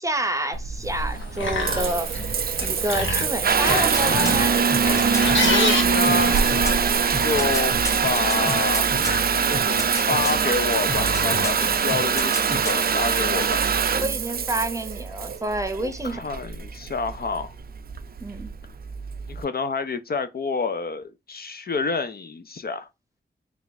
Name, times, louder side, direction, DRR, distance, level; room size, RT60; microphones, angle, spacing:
voice 1, 0.0-2.2 2.6-4.6 14.0-16.3 18.2-18.5, right 1 dB, 15° right, 0.7 m, -28 dB
Water tap faucet / Bathtub (filling or washing) / Trickle dribble, 0.5-19.4, right 6 dB, 50° right, 0.4 m, -23 dB
sound 1, 1.1-11.9, left 3 dB, 75° left, 1.0 m, -30 dB
sound 2, 3.7-5.5 6.0-9.3 9.5-10.4 10.9-11.6 11.9-12.9 13.2-13.3, left 1 dB, 15° left, 1.0 m, -31 dB
voice 2, 5.4-7.7 8.0-8.9 9.5-13.6 15.8-17.5 19.3-22.9, left 4 dB, 50° left, 0.5 m, -28 dB
3.4 x 2.4 x 4.0 m
wide cardioid pair, 75°, 20 cm